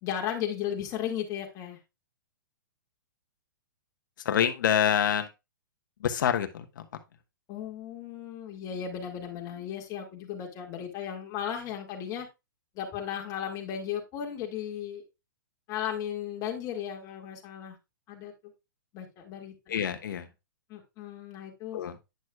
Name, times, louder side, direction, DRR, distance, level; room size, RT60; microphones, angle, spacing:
voice 1, 0.0-1.8 7.5-12.3 12.7-15.0 15.7-17.8 18.1-18.3 18.9-19.7 20.7-22.0, left 9 dB, 30° left, 1 dB, 2.1 m, -35 dB
voice 2, 4.2-5.3 6.0-6.9 19.7-20.3 21.7-21.9, left 9 dB, 70° left, 8 dB, 1.1 m, -26 dB
9.5 x 6.2 x 2.4 m, 0.24 s
hypercardioid pair, 140°, 11 cm